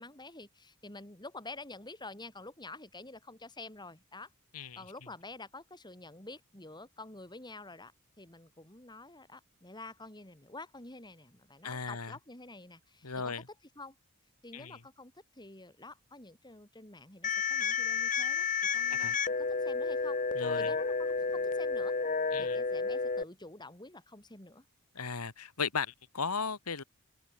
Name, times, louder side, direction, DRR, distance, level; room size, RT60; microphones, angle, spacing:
voice 1, 0.0-4.3 4.8-7.9 8.2-13.3 13.8-14.0 14.4-22.0 22.4-24.7, left 2 dB, 20° left, 5.3 m, -49 dB
voice 2, 11.6-12.2 13.0-13.5 14.5-14.8 18.9-19.1 20.3-20.7 22.3-22.6 24.9-26.8, left 5 dB, 80° left, 1.9 m, -36 dB
sound 1, 17.2-23.2, left 5 dB, 35° left, 1.1 m, -31 dB
head